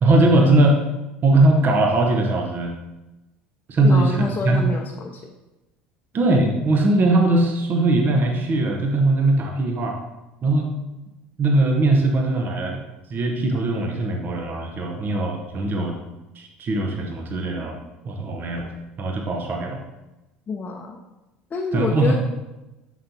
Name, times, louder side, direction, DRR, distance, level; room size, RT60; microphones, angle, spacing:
voice 1, 0.0-0.8 1.2-2.7 3.7-4.6 6.1-10.0 10.4-10.7 11.4-12.8 13.1-15.9 16.3-17.8 18.0-19.8 21.7-22.2, right 2 dB, 35° right, 1 dB, 1.2 m, -20 dB
voice 2, 3.8-5.3 20.5-21.0 21.5-22.2, left 4 dB, 30° left, 0 dB, 0.8 m, -27 dB
7.3 x 6.8 x 2.9 m, 1.0 s
figure-of-eight pair, 65°, 5 cm